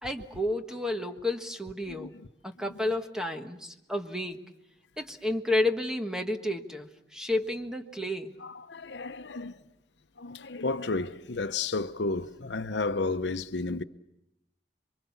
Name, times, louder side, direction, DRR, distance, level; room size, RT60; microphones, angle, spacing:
voice 1, 0.0-2.1 2.4-4.4 5.0-8.4, left 1 dB, 5° right, 1.4 m, -31 dB
voice 2, 8.4-9.6 10.2-13.8, left 3 dB, 90° left, 0.9 m, -32 dB
27.5 x 24.0 x 7.2 m
head